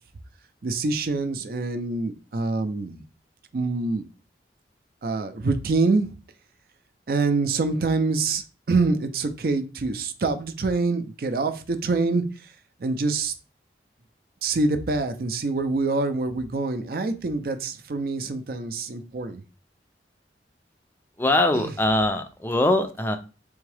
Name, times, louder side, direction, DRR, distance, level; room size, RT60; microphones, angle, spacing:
voice 1, 0.6-3.0 3.5-4.1 5.0-6.1 7.1-12.2 12.8-13.3 14.4-19.4 21.5-21.7, right 3 dB, 55° right, 9 dB, 0.5 m, -25 dB
voice 2, 21.2-23.2, left 1 dB, 10° left, 7 dB, 0.4 m, -22 dB
3.5 x 3.5 x 3.3 m, 0.33 s
head